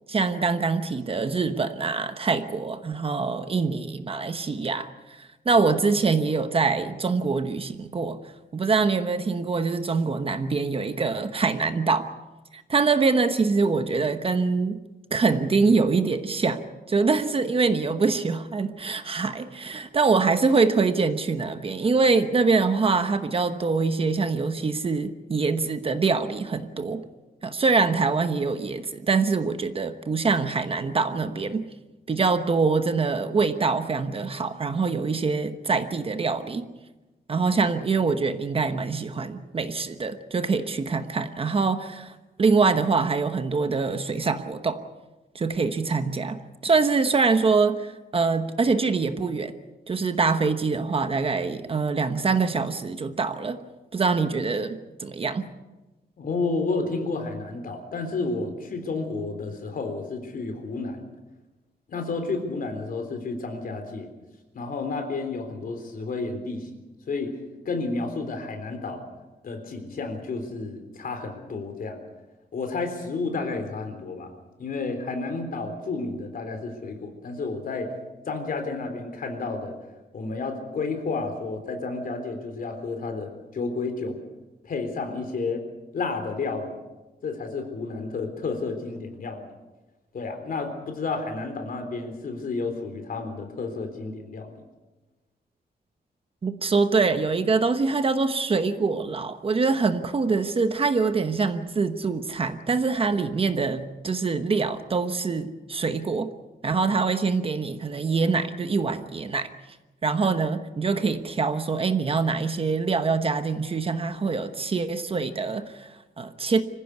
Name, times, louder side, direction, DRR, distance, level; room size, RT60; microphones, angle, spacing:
voice 1, 0.1-8.2 8.5-12.1 12.5-14.8 15.1-27.0 27.4-31.7 32.1-36.6 37.3-44.8 45.3-49.5 49.9-53.6 53.9-55.5 96.4-106.3 106.6-109.5 110.0-116.6, right 4 dB, 35° right, 9 dB, 1.0 m, -24 dB
voice 2, 56.2-61.0 61.9-64.1 64.5-66.7 67.1-67.3 67.7-69.0 69.4-72.0 72.5-74.3 74.6-77.9 78.3-79.7 80.1-84.2 84.6-85.6 85.9-86.8 87.2-89.5 90.1-94.5, left 3 dB, 55° left, 6 dB, 3.8 m, -31 dB
25.5 x 15.5 x 8.2 m, 1.1 s
wide cardioid pair, 175°, 17 cm